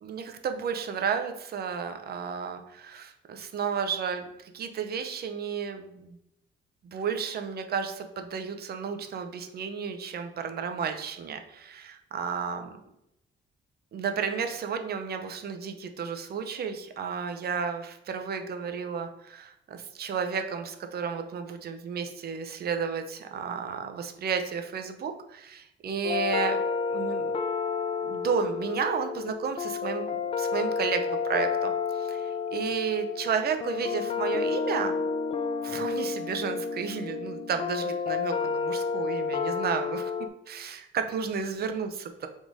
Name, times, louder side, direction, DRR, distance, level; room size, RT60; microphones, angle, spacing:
voice 1, 0.0-4.3 4.5-6.2 6.8-12.8 13.9-26.6 26.9-27.4 28.0-31.7 32.0-35.0 35.6-40.1 40.5-42.3, right 6 dB, 55° right, 7 dB, 0.6 m, -32 dB
sound 1, 26.0-40.3, left 5 dB, 30° left, 0.4 m, -30 dB
3.6 x 2.6 x 4.7 m, 0.82 s
cardioid pair, 90°, 20 cm